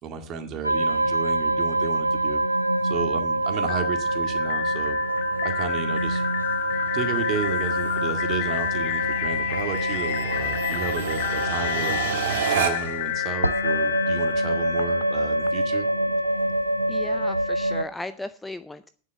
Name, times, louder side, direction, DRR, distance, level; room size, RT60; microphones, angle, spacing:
voice 1, 0.0-2.4 2.8-5.0 5.4-6.2 6.9-15.9, right 6 dB, 35° right, 6 dB, 2.0 m, -33 dB
sound 1, 0.6-17.8, right 1 dB, 90° right, 0.6 m, -26 dB
sound 2, 2.8-13.1, right 9 dB, 55° right, 1.6 m, -33 dB
sound 3, 3.6-15.5, left 18 dB, 45° left, 0.7 m, -30 dB
voice 2, 16.9-18.9, left 2 dB, 5° left, 12 dB, 0.5 m, -36 dB
10.0 x 7.5 x 6.6 m, 0.43 s
figure-of-eight pair, 90°, 0 cm